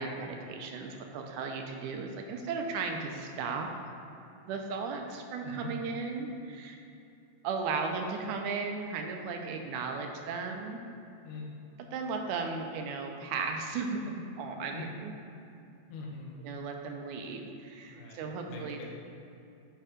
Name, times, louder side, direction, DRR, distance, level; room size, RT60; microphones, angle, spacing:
voice 1, 0.0-3.7 4.5-6.8 7.4-10.8 11.9-15.1 16.4-18.9, right 4 dB, 80° right, 3 dB, 2.1 m, -36 dB
voice 2, 15.9-16.3 17.8-18.9, left 4 dB, 75° left, -2 dB, 2.2 m, -43 dB
9.3 x 3.4 x 4.9 m, 2.7 s
omnidirectional pair, 3.6 m